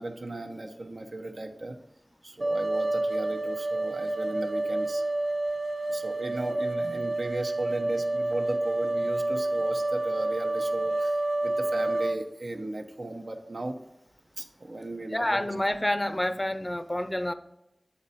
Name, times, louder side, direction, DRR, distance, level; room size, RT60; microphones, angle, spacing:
voice 1, 0.0-1.8 2.2-5.0 5.9-13.8 14.4-15.4, right 2 dB, 70° right, 3 dB, 0.9 m, -36 dB
sound 1, 2.4-12.2, right 2 dB, 45° right, 0.7 m, -29 dB
voice 2, 15.1-17.3, left 1 dB, 25° left, 10 dB, 0.6 m, -28 dB
8.6 x 4.2 x 4.1 m, 0.87 s
wide cardioid pair, 40°, 0 cm